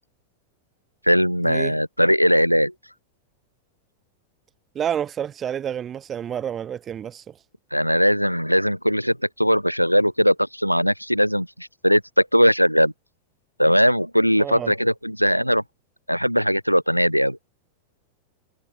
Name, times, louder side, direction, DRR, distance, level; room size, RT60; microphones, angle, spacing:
voice 1, 1.1-2.7 7.7-12.9 13.6-15.6 16.1-17.4, equal, 90° left, 0.9 m, -19 dB
voice 2, 4.8-7.3 14.4-14.7, right 9 dB, 25° right, 0.5 m, -29 dB
figure-of-eight pair, 90°, 0 cm